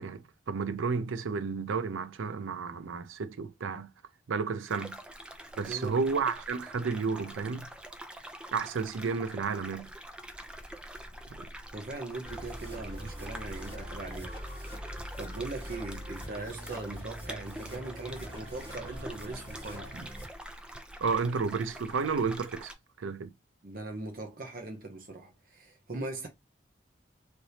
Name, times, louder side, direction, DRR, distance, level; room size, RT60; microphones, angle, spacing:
voice 1, 0.0-3.9 4.3-5.0 5.6-7.7 8.5-9.9 11.4-11.5 19.9-20.1 21.0-22.7 23.0-23.3, right 5 dB, 90° right, 0.5 m, -32 dB
sound 1, 4.7-22.7, right 1 dB, 5° right, 0.3 m, -45 dB
voice 2, 5.7-6.0 11.7-14.4 15.2-19.9 23.6-26.3, right 2 dB, 45° right, 0.7 m, -40 dB
sound 2, 12.2-20.2, equal, 30° right, 1.4 m, -43 dB
3.3 x 2.9 x 2.7 m
head